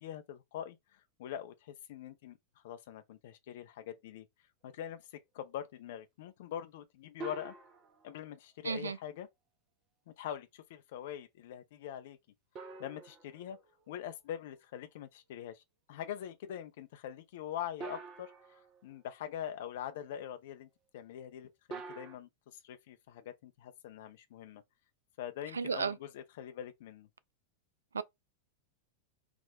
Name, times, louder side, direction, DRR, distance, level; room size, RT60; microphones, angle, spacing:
voice 1, 0.0-2.4 2.6-4.3 4.6-7.5 8.0-9.3 10.1-12.2 12.8-13.6 13.9-15.6 15.9-18.3 18.8-24.6 25.2-27.1, left 10 dB, 55° left, 0.6 m, -43 dB
sound 1, 7.2-8.3 12.5-14.1 17.8-19.0 21.7-22.2, right 4 dB, 30° right, 0.7 m, -46 dB
voice 2, 8.6-9.0 25.5-26.0 27.9-28.0, right 5 dB, 70° right, 0.3 m, -33 dB
3.7 x 2.4 x 3.2 m
figure-of-eight pair, 90°, 0 cm